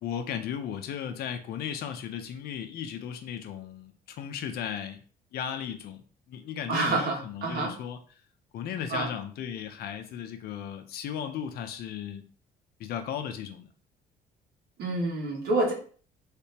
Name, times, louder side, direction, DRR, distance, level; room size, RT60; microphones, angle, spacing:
voice 1, 0.0-5.0 5.3-8.0 8.5-12.2 12.8-13.7, left 8 dB, 65° left, 7 dB, 0.6 m, -36 dB
voice 2, 6.7-7.7 8.9-9.1 14.8-15.7, right 2 dB, 70° right, -2 dB, 1.7 m, -28 dB
3.4 x 3.3 x 2.9 m, 0.41 s
cardioid pair, 110°, 17 cm